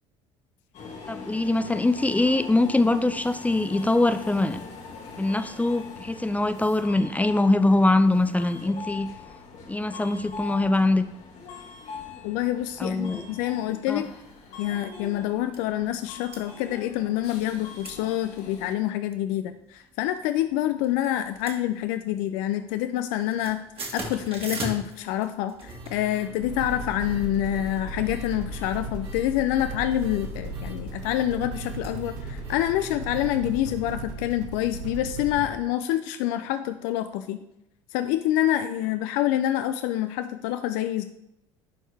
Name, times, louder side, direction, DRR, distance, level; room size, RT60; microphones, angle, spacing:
Subway metro underground, 0.7-18.8, left 5 dB, 50° left, 1.6 m, -42 dB
voice 1, 1.1-4.6 5.2-9.1 9.7-11.0 12.8-13.3 13.9-14.0, left 2 dB, 10° left, 11 dB, 0.5 m, -23 dB
voice 2, 12.2-14.1 14.6-23.6 23.9-37.4 37.9-41.0, left 13 dB, 65° left, 9 dB, 0.5 m, -27 dB
sound 1, 14.2-14.4 14.9-15.0 15.2-15.6 16.0-16.4 17.2-17.5 17.8-18.0 18.3-18.4 18.9-19.2 19.9-20.5 20.8-22.2 22.5-22.8 23.1-33.6, right 2 dB, 35° right, 2.0 m, -41 dB
sound 2, 26.4-35.5, right 2 dB, 70° right, 1.3 m, -36 dB
10.5 x 4.5 x 3.4 m, 0.84 s
hypercardioid pair, 65°, 16 cm